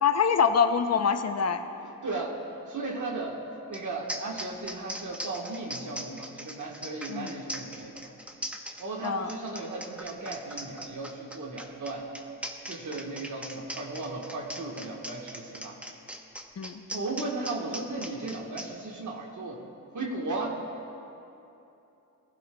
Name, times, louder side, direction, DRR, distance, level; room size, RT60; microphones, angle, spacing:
voice 1, 0.0-1.6 7.1-7.4 9.0-9.3 16.6-16.8, left 6 dB, 50° left, 8 dB, 0.7 m, -25 dB
voice 2, 2.0-3.4 3.7-8.1 8.8-12.1 12.7-15.7 16.9-19.6 19.9-20.6, right 3 dB, 60° right, -1 dB, 1.4 m, -36 dB
sound 1, 3.7-3.8 4.1-18.7, equal, 5° right, 0.8 m, -39 dB
18.5 x 12.0 x 2.3 m, 2.9 s
cardioid pair, 85°, 34 cm